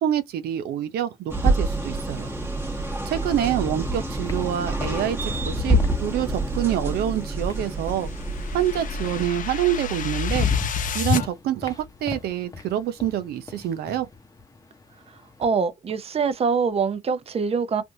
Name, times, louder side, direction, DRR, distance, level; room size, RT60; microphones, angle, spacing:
voice 1, 0.0-2.3 3.1-8.1 8.5-10.5 10.9-14.1, right 11 dB, 80° right, 0.6 m, -26 dB
sound 1, 1.3-9.3, right 1 dB, 15° right, 1.1 m, -27 dB
sound 2, 3.7-8.1 9.4-9.5 9.9-15.6, left 4 dB, 20° left, 0.8 m, -36 dB
sound 3, 7.2-11.3, left 6 dB, 55° left, 0.6 m, -29 dB
voice 2, 15.4-17.8, right 5 dB, 40° right, 0.6 m, -24 dB
3.4 x 2.5 x 2.6 m
cardioid pair, 85°, 16 cm